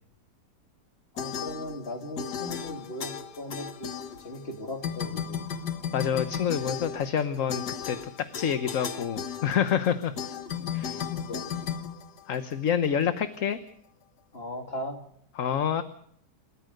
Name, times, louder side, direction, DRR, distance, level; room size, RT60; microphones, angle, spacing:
voice 1, 1.1-3.9 4.2-5.4 10.6-11.5 14.3-15.0, left 1 dB, 35° left, 4 dB, 3.4 m, -38 dB
sound 1, 1.2-4.5 4.8-12.7, left 8 dB, 70° left, 2.0 m, -35 dB
voice 2, 5.9-10.1 10.7-11.0 12.3-13.6 15.4-15.8, left 8 dB, 55° left, 11 dB, 1.3 m, -27 dB
29.0 x 14.0 x 6.6 m, 0.69 s
omnidirectional pair, 1.8 m